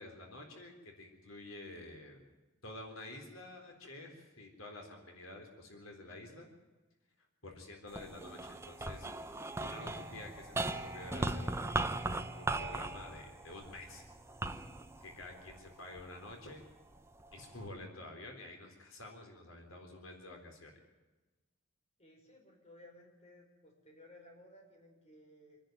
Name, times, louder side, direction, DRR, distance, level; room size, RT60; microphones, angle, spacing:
voice 1, 0.0-2.2 2.6-6.5 7.4-9.1 9.6-11.7 12.3-14.0 15.0-16.6 17.3-20.7, left 2 dB, 85° left, 3 dB, 3.8 m, -49 dB
sound 1, 7.9-16.3 16.9-17.7, right 2 dB, 15° right, 0.8 m, -39 dB
voice 2, 22.0-25.6, left 1 dB, 30° left, 1 dB, 4.9 m, -58 dB
27.0 x 10.5 x 9.3 m, 1.2 s
head